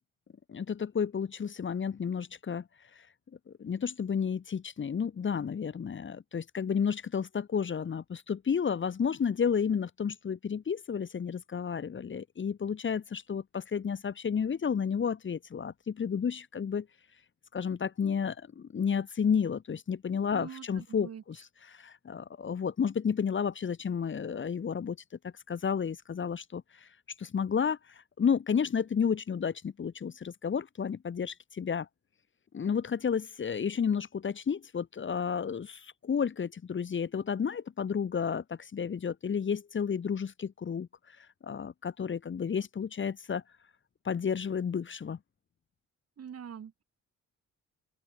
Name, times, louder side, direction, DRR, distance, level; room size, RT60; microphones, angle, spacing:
voice 1, 0.5-2.6 3.6-16.9 17.5-21.4 21.7-25.0 25.5-26.9 27.2-27.8 28.2-31.9 32.5-40.9 41.4-43.4 44.1-45.2, left 7 dB, 40° left, 1.7 m, -31 dB
voice 2, 20.3-21.2 46.2-46.8, right 8 dB, 55° right, 7.7 m, -44 dB
open air
cardioid pair, 90°, 30 cm